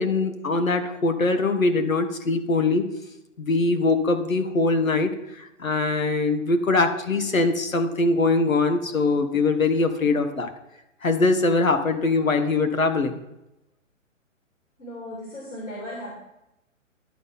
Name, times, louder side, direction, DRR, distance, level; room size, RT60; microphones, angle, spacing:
voice 1, 0.0-2.9 3.4-10.5 11.0-13.2, left 3 dB, 90° left, 7 dB, 1.3 m, -22 dB
voice 2, 14.8-16.1, left 1 dB, 65° left, -2 dB, 2.6 m, -36 dB
11.0 x 4.1 x 5.6 m, 0.90 s
figure-of-eight pair, 130°, 39 cm